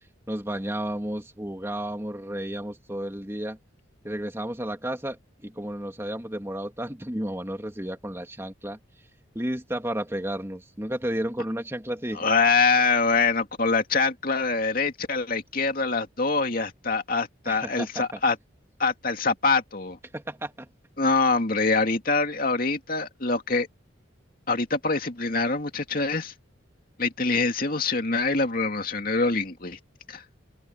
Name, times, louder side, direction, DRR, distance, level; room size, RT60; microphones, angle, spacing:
voice 1, 0.3-3.6 4.0-8.8 9.3-12.3 17.5-18.0 20.1-20.7, right 1 dB, 15° right, 2.6 m, -32 dB
voice 2, 12.1-18.4 18.8-20.0 21.0-23.7 24.5-26.3 27.0-29.8 30.1-30.2, left 4 dB, 45° left, 2.6 m, -24 dB
head